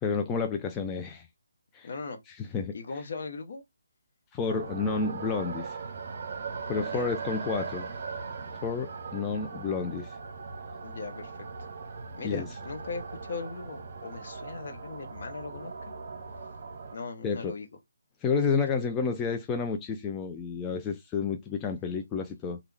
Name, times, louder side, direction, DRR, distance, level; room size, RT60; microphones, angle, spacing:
voice 1, 0.0-1.3 1.7-1.9 2.4-2.8 4.3-5.8 6.7-7.9 8.6-10.2 12.2-12.5 17.2-17.5 18.2-22.6, left 5 dB, 15° left, 0.4 m, -30 dB
voice 2, 1.8-2.2 2.7-3.6 6.8-7.1 10.8-11.7 12.2-15.9 16.9-17.7, left 4 dB, 50° left, 0.9 m, -39 dB
sound 1, 4.5-17.0, right 5 dB, 45° right, 0.9 m, -39 dB
3.4 x 2.3 x 3.2 m
figure-of-eight pair, 150°, 0 cm